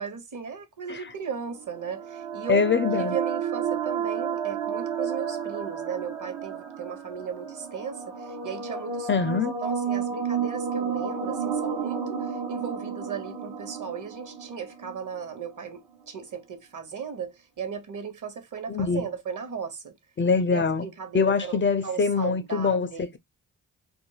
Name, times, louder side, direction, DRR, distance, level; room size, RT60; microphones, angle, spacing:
voice 1, 0.0-2.6 3.0-20.0 20.5-23.1, right 6 dB, 45° right, 0.9 m, -36 dB
sound 1, 1.3-15.5, right 7 dB, 70° right, 1.1 m, -31 dB
voice 2, 2.5-3.1 9.1-9.5 18.7-19.0 20.2-20.9 21.1-23.2, left 5 dB, 30° left, 0.4 m, -24 dB
2.4 x 2.1 x 3.2 m
hypercardioid pair, 40°, 44 cm